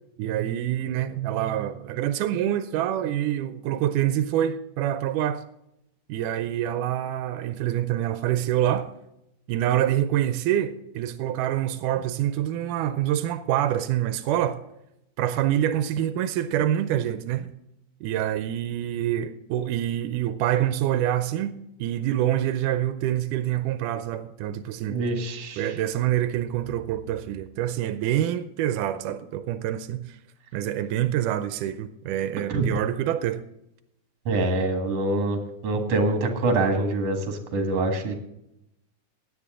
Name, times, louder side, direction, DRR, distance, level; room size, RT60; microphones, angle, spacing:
voice 1, 0.2-5.4 6.1-8.9 9.5-14.6 15.2-17.5 18.0-25.0 25.6-30.2 30.5-33.4, right 12 dB, 90° right, 2.2 m, -26 dB
voice 2, 24.9-25.7 32.5-32.7 34.3-38.1, right 2 dB, 55° right, 2.7 m, -25 dB
16.5 x 9.9 x 3.7 m
omnidirectional pair, 3.6 m